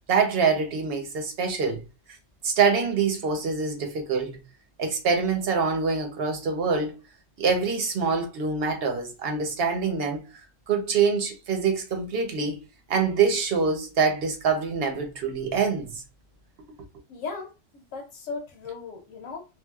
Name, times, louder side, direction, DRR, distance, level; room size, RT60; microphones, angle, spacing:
voice 1, 0.1-1.8 2.4-4.4 4.8-7.0 7.4-10.2 10.7-16.0, right 5 dB, 55° right, 0.9 m, -25 dB
voice 2, 17.1-19.5, left 4 dB, 85° left, 1.0 m, -37 dB
3.0 x 2.4 x 2.3 m
omnidirectional pair, 1.3 m